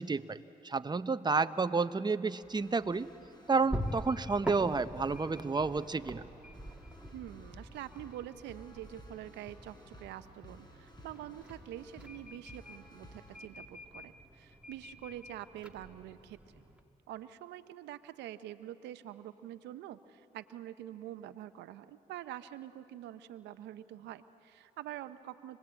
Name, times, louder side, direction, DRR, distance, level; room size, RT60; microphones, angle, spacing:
voice 1, 0.0-3.1 3.5-6.2, right 4 dB, 25° right, 12 dB, 0.8 m, -31 dB
sound 1, 2.3-13.4, equal, 25° left, 5.5 m, -55 dB
sound 2, 2.4-16.8, equal, 5° right, 2.1 m, -45 dB
voice 2, 7.1-16.6 17.1-25.6, right 12 dB, 90° right, 12 dB, 0.6 m, -46 dB
26.0 x 19.5 x 8.7 m, 2.9 s
supercardioid pair, 55°, 17 cm